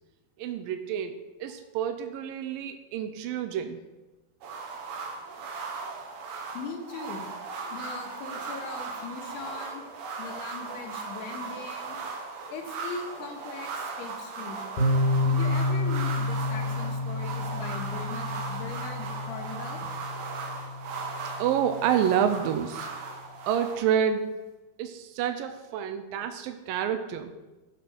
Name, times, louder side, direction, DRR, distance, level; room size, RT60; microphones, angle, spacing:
voice 1, 0.4-3.8 21.4-22.9 23.5-24.3 24.8-27.3, right 9 dB, 90° right, 7 dB, 2.0 m, -28 dB
sound 1, 4.4-23.8, right 4 dB, 75° right, 3.5 m, -38 dB
voice 2, 6.5-7.3 7.7-9.8 10.2-12.0 12.5-14.6 15.2-19.8, left 5 dB, 75° left, 3 dB, 3.3 m, -40 dB
sound 2, 14.8-22.5, left 2 dB, 55° left, 2.6 m, -30 dB
14.5 x 6.1 x 6.1 m, 1.1 s
omnidirectional pair, 5.0 m